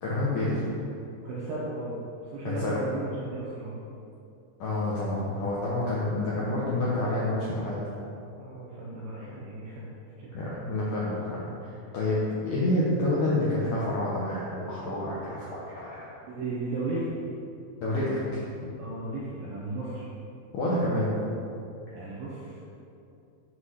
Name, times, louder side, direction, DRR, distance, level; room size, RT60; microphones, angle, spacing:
voice 1, 0.0-0.6 2.4-2.8 4.6-7.8 10.3-16.0 17.8-18.7 20.5-21.1, left 1 dB, 80° left, -7 dB, 1.9 m, -28 dB
voice 2, 1.2-2.0 2.3-3.8 8.4-10.3 16.2-17.1 18.8-20.1 21.9-22.7, right 2 dB, 75° right, -6 dB, 2.2 m, -35 dB
8.0 x 3.3 x 5.6 m, 2.7 s
omnidirectional pair, 4.9 m